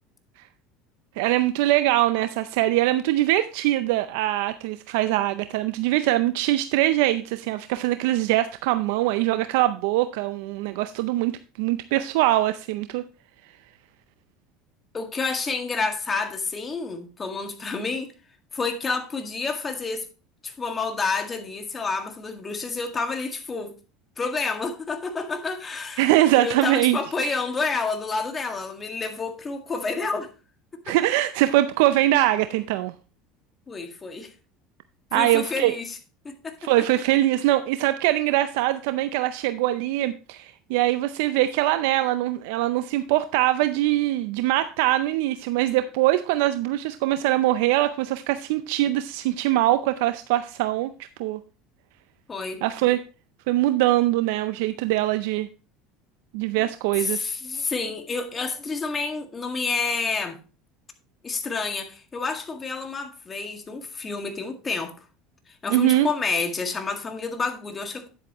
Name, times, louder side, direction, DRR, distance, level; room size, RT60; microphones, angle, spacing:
voice 1, 1.2-13.0 26.0-27.0 30.9-32.9 35.1-35.8 36.6-50.9 51.2-51.4 52.6-53.0 53.5-55.5 56.3-57.3 65.7-66.1, right 15 dB, 75° right, 0.5 m, -22 dB
voice 2, 14.9-18.1 18.5-20.1 20.4-23.7 24.2-26.1 26.3-30.3 30.7-31.0 33.7-34.3 35.1-36.0 36.2-36.7 52.3-52.6 57.0-60.4 61.2-64.9 65.6-68.1, left 4 dB, 25° left, 1.8 m, -29 dB
9.8 x 8.0 x 3.0 m
supercardioid pair, 90°, 0 cm